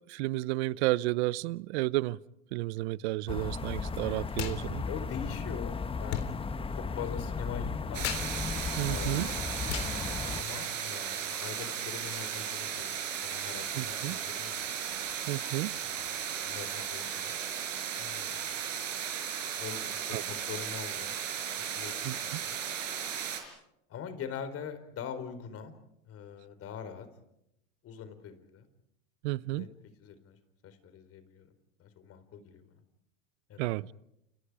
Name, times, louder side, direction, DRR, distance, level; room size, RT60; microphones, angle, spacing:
voice 1, 0.1-2.2 2.5-4.8 8.8-9.3 13.8-14.2 15.3-15.8 20.1-20.2 22.0-22.4 29.2-29.7 33.6-33.9, right 19 dB, 60° right, 0.8 m, -32 dB
sound 1, 3.3-10.4, left 5 dB, 15° left, 1.2 m, -35 dB
sound 2, 4.3-4.6 4.9-11.0, left 11 dB, 70° left, 3.7 m, -41 dB
voice 2, 4.9-5.7 6.0-6.3 6.7-8.0 8.8-9.4 10.3-14.7 15.8-16.2 16.4-17.4 18.0-18.5 19.6-21.2 21.6-22.6 23.9-25.7 26.1-27.1 27.8-28.7 29.5-29.7 30.0-30.4 30.6-31.5 31.8-32.8 33.5-33.8, left 7 dB, 40° left, 4.5 m, -43 dB
sound 3, 7.9-23.4, right 8 dB, 85° right, 5.7 m, -36 dB
30.0 x 29.0 x 5.0 m
hypercardioid pair, 105°, 38 cm